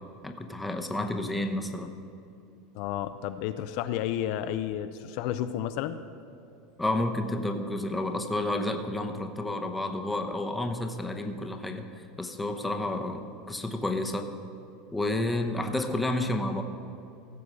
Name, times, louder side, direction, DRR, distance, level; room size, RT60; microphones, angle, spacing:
voice 1, 0.2-1.9 6.8-14.3 14.9-16.6, left 1 dB, 5° left, 5 dB, 0.8 m, -30 dB
voice 2, 2.7-6.0, left 11 dB, 60° left, 10 dB, 0.5 m, -31 dB
16.0 x 6.9 x 6.2 m, 2.7 s
supercardioid pair, 140°, 0 cm